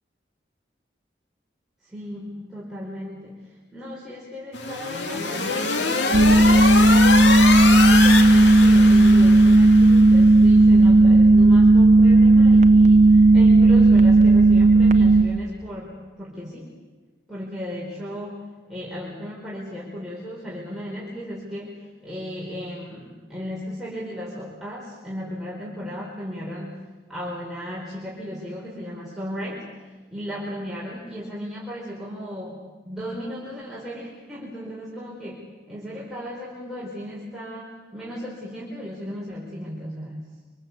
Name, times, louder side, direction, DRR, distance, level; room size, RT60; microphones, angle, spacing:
voice 1, 1.8-6.8 7.7-16.7 17.3-26.8 27.1-40.3, equal, ahead, -6 dB, 4.7 m, -35 dB
sound 1, 4.5-10.1, left 3 dB, 75° left, 2.7 m, -24 dB
sound 2, 6.1-15.2, right 2 dB, 40° right, 1.1 m, -13 dB
27.0 x 26.0 x 8.5 m, 1.3 s
head